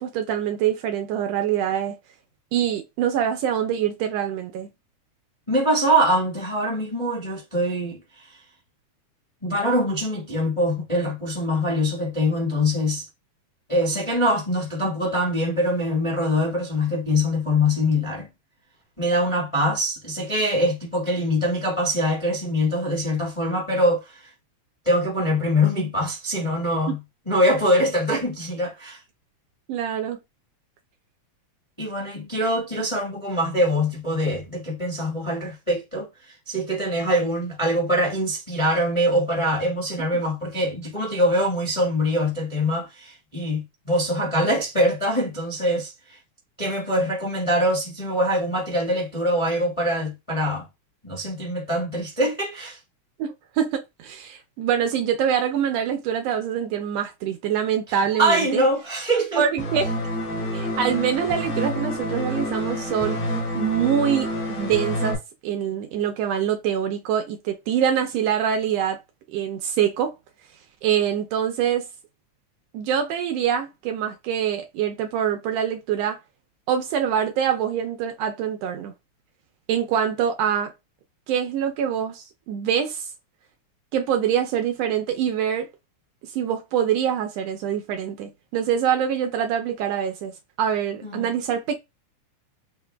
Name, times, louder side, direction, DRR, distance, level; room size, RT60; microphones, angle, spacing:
voice 1, 0.0-2.0 2.5-4.7 26.9-27.0 29.7-30.2 53.2-58.6 59.4-59.8 60.5-63.2 63.5-65.2 65.4-69.0 69.3-70.1 70.8-71.9 72.7-76.2 76.7-78.9 79.7-80.7 81.3-83.1 83.9-85.7 86.2-91.7, right 9 dB, 80° right, 1.4 m, -25 dB
voice 2, 5.5-8.4 9.4-13.1 13.7-18.3 19.0-24.3 24.8-27.0 27.2-29.0 31.8-46.2 46.6-50.6 51.0-52.8 58.2-59.4 91.0-91.3, equal, 20° left, 0.7 m, -23 dB
sound 1, 59.6-65.1, equal, 65° left, 2.7 m, -28 dB
7.4 x 2.5 x 2.2 m
omnidirectional pair, 3.3 m